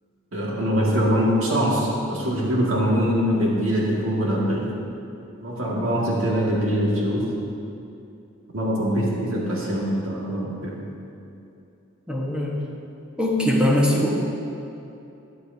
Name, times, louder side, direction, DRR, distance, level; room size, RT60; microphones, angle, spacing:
voice 1, 0.3-4.7 5.4-7.3 8.5-10.9, equal, 70° right, -4 dB, 2.0 m, -23 dB
voice 2, 12.1-12.6 13.2-14.2, left 1 dB, 5° right, -4 dB, 1.2 m, -21 dB
13.5 x 10.0 x 2.7 m, 2.7 s
head